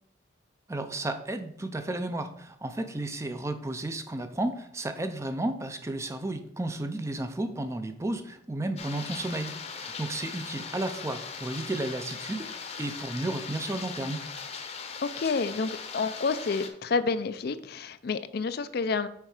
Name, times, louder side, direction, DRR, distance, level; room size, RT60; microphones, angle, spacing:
voice 1, 0.7-12.5 12.8-14.2, right 2 dB, 15° right, 8 dB, 0.4 m, -33 dB
sound 1, 8.8-16.7, left 5 dB, 35° left, 0.8 m, -39 dB
voice 2, 15.0-19.1, left 4 dB, 55° left, 12 dB, 0.4 m, -29 dB
6.4 x 4.4 x 4.9 m, 0.70 s
head